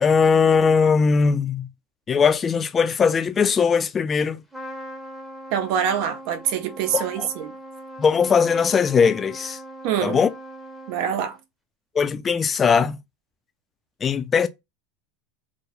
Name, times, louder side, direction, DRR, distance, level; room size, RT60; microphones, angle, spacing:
voice 1, 0.0-1.7 2.1-4.4 6.9-7.3 8.0-9.6 10.0-10.3 11.9-13.0 14.0-14.5, left 6 dB, 25° left, 0.3 m, -20 dB
Trumpet, 4.5-11.4, right 1 dB, ahead, 0.7 m, -40 dB
voice 2, 5.5-7.5 9.8-10.2 10.9-11.4, right 8 dB, 60° right, 0.5 m, -25 dB
2.2 x 2.0 x 2.9 m
hypercardioid pair, 95°, 0 cm